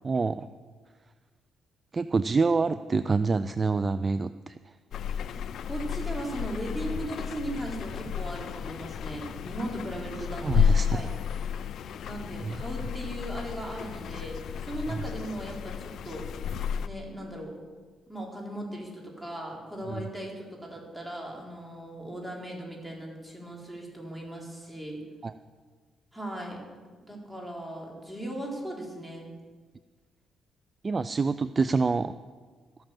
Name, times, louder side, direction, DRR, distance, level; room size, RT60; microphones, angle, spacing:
voice 1, 0.0-0.5 1.9-4.6 10.4-11.0 12.4-12.6 14.9-15.0 19.9-20.0 25.2-25.3 30.8-32.1, right 4 dB, 30° right, 13 dB, 0.4 m, -26 dB
sound 1, 4.9-16.9, left 8 dB, 65° left, 0.5 m, -32 dB
voice 2, 5.6-11.1 12.0-16.3 16.8-17.6 18.1-25.0 26.1-26.6 27.0-29.3, right 1 dB, 5° right, -1 dB, 3.9 m, -38 dB
13.0 x 8.8 x 7.6 m, 1.5 s
cardioid pair, 90°, 0 cm